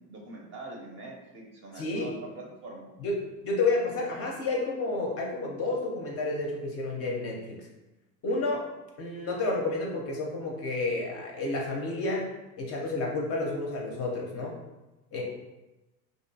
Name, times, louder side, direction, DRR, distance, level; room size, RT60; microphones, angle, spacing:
voice 1, 0.0-2.9 15.1-15.2, right 2 dB, 30° right, -1 dB, 0.5 m, -44 dB
voice 2, 1.7-2.1 3.0-3.2 3.4-7.7 8.2-8.7 9.0-12.3 12.6-14.6 15.1-15.2, left 2 dB, 35° left, -1 dB, 0.5 m, -30 dB
2.6 x 2.2 x 2.6 m, 1.0 s
hypercardioid pair, 95°, 44 cm